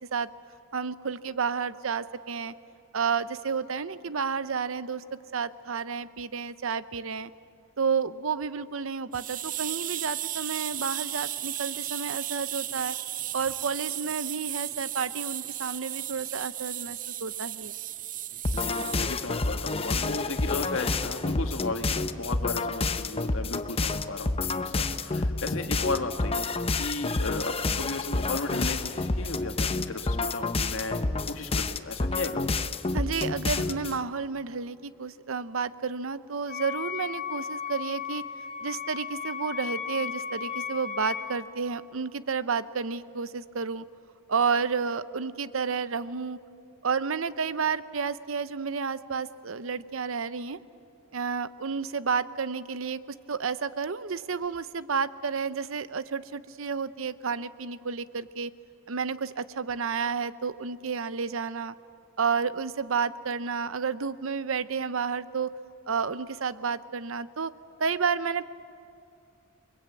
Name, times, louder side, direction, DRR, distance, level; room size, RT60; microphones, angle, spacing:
voice 1, 0.7-2.5 2.9-5.0 5.3-7.3 7.8-12.9 13.3-17.7 32.9-38.2 38.6-43.8 44.3-46.4 46.8-50.6 51.1-53.0 53.3-58.5 58.9-61.7 62.2-65.5 65.9-67.5 67.8-68.5, right 5 dB, 75° right, 14 dB, 0.8 m, -31 dB
sound 1, 9.1-19.0, right 13 dB, 40° right, 0.5 m, -35 dB
sound 2, 18.4-34.0, left 3 dB, 30° left, 0.8 m, -29 dB
voice 2, 18.5-31.0 31.3-32.5, left 2 dB, 70° left, 5 dB, 1.9 m, -35 dB
Wind instrument woodwind instrument, 36.5-41.4, left 8 dB, 45° left, 3.1 m, -35 dB
29.5 x 22.0 x 8.4 m, 2.6 s
head